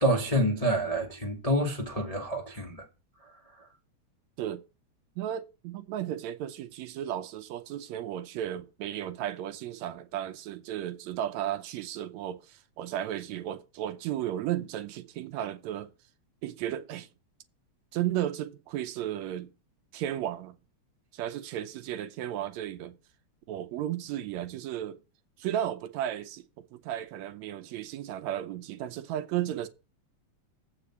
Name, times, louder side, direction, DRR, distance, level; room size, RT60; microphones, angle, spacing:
voice 1, 0.0-2.8, right 1 dB, 40° left, 0.5 m, -27 dB
voice 2, 5.2-15.9 16.4-17.1 17.9-19.5 19.9-20.6 21.1-23.0 23.5-25.0 25.4-29.7, right 11 dB, 75° right, 1.9 m, -34 dB
7.9 x 5.0 x 6.8 m
omnidirectional pair, 3.4 m